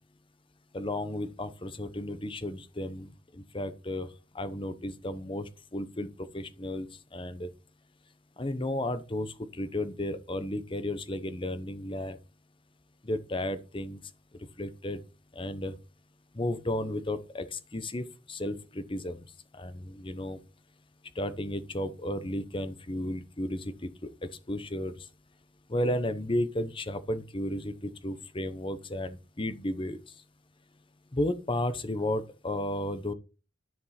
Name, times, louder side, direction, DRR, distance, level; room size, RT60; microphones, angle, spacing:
voice 1, 0.7-4.1 4.3-7.5 8.4-12.2 13.0-14.0 14.6-15.0 15.3-15.7 16.3-19.2 19.5-20.4 21.1-25.1 25.7-30.0 31.1-33.1, left 1 dB, 25° left, 0.8 m, -33 dB
13.0 x 5.2 x 4.3 m
head